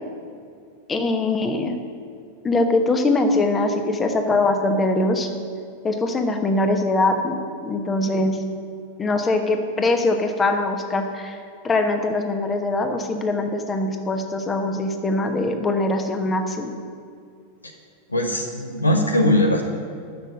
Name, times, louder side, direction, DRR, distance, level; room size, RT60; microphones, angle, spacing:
voice 1, 0.9-1.8 2.4-5.3 5.8-7.4 7.6-8.4 9.0-16.7, left 2 dB, 20° left, 6 dB, 1.1 m, -22 dB
voice 2, 18.1-19.6, left 1 dB, 80° left, 4 dB, 0.8 m, -20 dB
10.5 x 6.8 x 7.5 m, 2.3 s
figure-of-eight pair, 90°, 0 cm